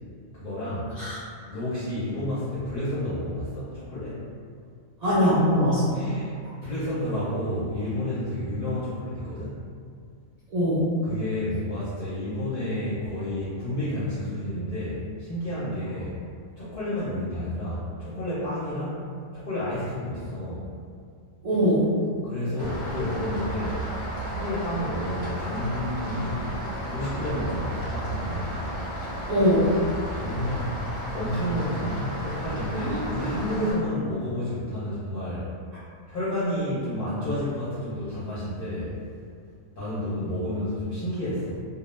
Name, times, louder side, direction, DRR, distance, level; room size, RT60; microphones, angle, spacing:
voice 1, 0.3-0.9 1.5-4.2 5.9-6.3 6.6-9.6 11.0-16.2 16.6-19.0 19.3-20.7 22.2-23.9 24.2-26.5 26.9-28.6 30.1-35.5 36.1-39.0 39.8-41.5, left 1 dB, 55° left, -12 dB, 0.6 m, -30 dB
voice 2, 5.0-6.0 10.5-10.9 21.4-21.9 29.3-29.7 32.9-33.3, equal, 70° right, -11 dB, 0.3 m, -22 dB
Rain, 22.6-33.7, right 1 dB, 25° right, 0.7 m, -33 dB
2.2 x 2.0 x 3.0 m, 2.3 s
omnidirectional pair, 1.4 m